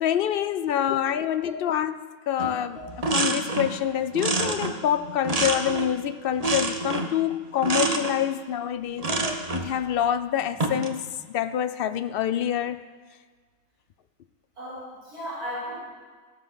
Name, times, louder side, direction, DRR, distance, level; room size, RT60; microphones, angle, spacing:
voice 1, 0.0-1.9 2.3-2.8 3.1-9.1 9.5-12.8, left 10 dB, 75° left, 12 dB, 0.5 m, -26 dB
sound 1, 2.4-2.6 2.8-3.8 4.1-6.0 6.4-7.2 7.6-8.1 9.0-9.7 10.4-10.9, right 2 dB, 30° right, 1.0 m, -27 dB
voice 2, 14.6-15.8, equal, 85° right, -9 dB, 5.7 m, -36 dB
15.5 x 13.0 x 5.7 m, 1.5 s
omnidirectional pair, 1.6 m